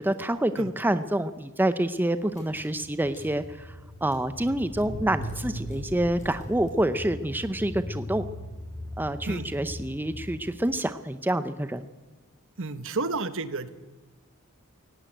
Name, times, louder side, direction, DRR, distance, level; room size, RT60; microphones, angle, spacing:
voice 1, 0.0-3.8 4.0-8.2 9.0-11.9, right 1 dB, 10° right, 11 dB, 0.6 m, -27 dB
Car / Engine, 2.3-10.7, left 1 dB, 35° left, 7.2 m, -39 dB
voice 2, 12.6-13.7, right 3 dB, 60° right, 12 dB, 1.2 m, -31 dB
17.5 x 17.0 x 9.1 m, 1.2 s
head